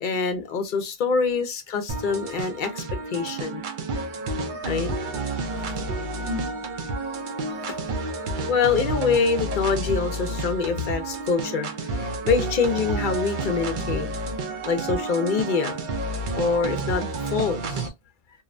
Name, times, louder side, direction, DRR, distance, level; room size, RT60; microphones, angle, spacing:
voice 1, 0.0-3.6 4.6-4.9 7.7-7.8 8.5-14.1 14.7-15.8 16.3-17.9, left 5 dB, 60° left, 0.7 m, -25 dB
sound 1, 1.9-17.9, right 2 dB, 60° right, 0.6 m, -30 dB
voice 2, 3.1-6.7, left 2 dB, 25° right, 0.8 m, -42 dB
2.6 x 2.1 x 2.5 m
omnidirectional pair, 1.0 m